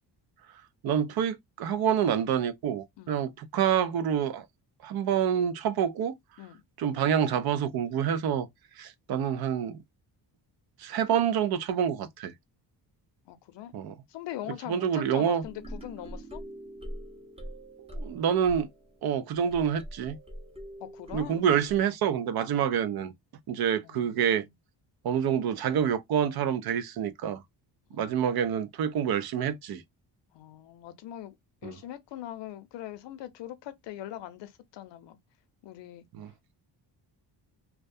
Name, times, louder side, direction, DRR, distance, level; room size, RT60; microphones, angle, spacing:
voice 1, 0.8-4.4 4.8-6.1 6.8-8.5 8.8-9.8 10.8-12.3 13.7-13.9 14.7-15.4 17.8-18.7 19.0-20.2 21.1-23.1 23.5-24.5 25.0-27.4 27.9-29.8 31.6-31.7 36.1-36.3, right 8 dB, 60° right, 0.5 m, -27 dB
voice 2, 13.3-13.7 14.1-16.4 20.8-21.4 23.8-24.5 27.9-28.6 30.3-31.3 31.6-35.2 35.6-36.0, left 12 dB, 90° left, 0.7 m, -42 dB
sound 1, 15.4-21.8, equal, 15° right, 0.6 m, -43 dB
2.3 x 2.1 x 2.6 m
cardioid pair, 120°, 42 cm